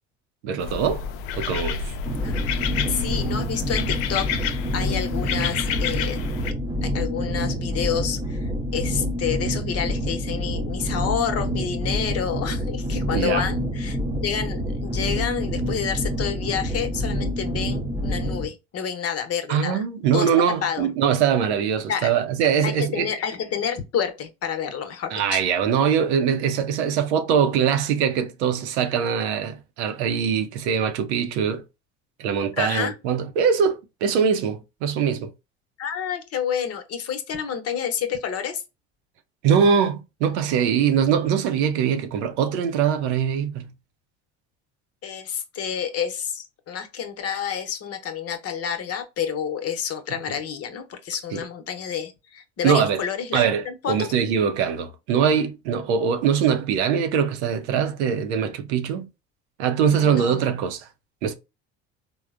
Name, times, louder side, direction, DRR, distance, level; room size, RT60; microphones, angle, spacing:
voice 1, 0.4-1.0 1.3-1.8 13.1-13.5 19.5-23.1 25.1-31.6 32.2-35.3 39.4-43.7 51.3-51.4 52.6-53.0 53.3-59.1 59.6-60.9 61.2-61.3, right 7 dB, 85° right, 0.6 m, -22 dB
sound 1, 0.6-6.5, left 8 dB, 70° left, 0.5 m, -29 dB
sound 2, 2.0-18.5, equal, 15° right, 0.6 m, -27 dB
voice 2, 2.9-6.2 6.8-19.8 20.1-20.3 20.6-20.9 21.9-22.2 22.6-25.4 32.6-32.9 35.8-38.6 45.0-54.1 59.9-60.6, left 8 dB, 45° left, 0.8 m, -29 dB
3.6 x 2.1 x 2.4 m
hypercardioid pair, 80°, 33 cm